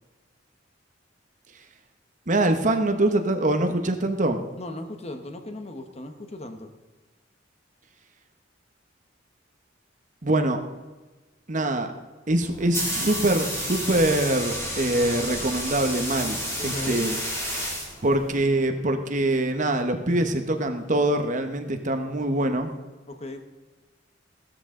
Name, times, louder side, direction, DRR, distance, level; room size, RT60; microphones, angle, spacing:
voice 1, 2.3-4.4 10.2-10.6 11.5-11.9 12.3-17.2 18.0-22.7, right 1 dB, 40° right, 6 dB, 1.1 m, -24 dB
voice 2, 4.6-6.7 16.6-17.1 23.1-23.4, left 1 dB, 35° left, 6 dB, 1.1 m, -37 dB
sound 1, 12.4-18.4, equal, 15° left, 3.3 m, -31 dB
15.5 x 13.0 x 3.8 m, 1.2 s
head